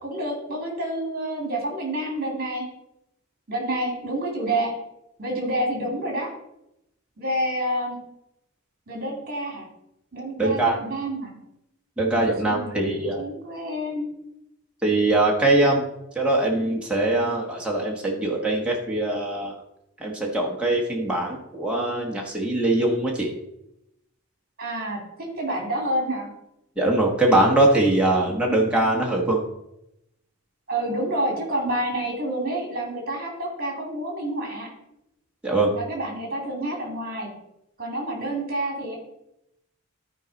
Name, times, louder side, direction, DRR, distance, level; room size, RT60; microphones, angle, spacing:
voice 1, 0.0-2.6 3.5-4.7 5.2-6.3 7.2-8.0 8.9-9.7 10.1-11.3 12.1-14.1 24.6-25.0 25.3-26.3 30.7-34.7 35.7-37.3 37.8-39.0, right 1 dB, 40° right, 1 dB, 2.6 m, -28 dB
voice 2, 10.4-10.8 12.0-13.2 14.8-15.8 16.1-19.5 20.0-23.3 26.8-29.4 35.4-35.7, right 2 dB, 5° right, -3 dB, 1.3 m, -22 dB
13.5 x 4.8 x 4.0 m, 0.84 s
head